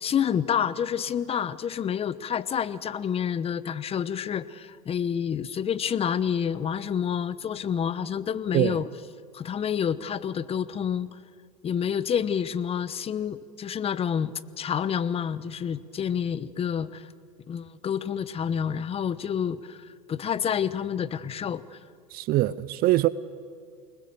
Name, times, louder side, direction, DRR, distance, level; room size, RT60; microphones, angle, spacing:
voice 1, 0.0-8.9 9.3-11.2 11.6-17.1 17.5-21.8, left 8 dB, 30° left, 1.1 m, -28 dB
voice 2, 22.1-23.1, right 16 dB, 50° right, 0.7 m, -23 dB
28.5 x 20.5 x 7.1 m
hypercardioid pair, 95°, 20 cm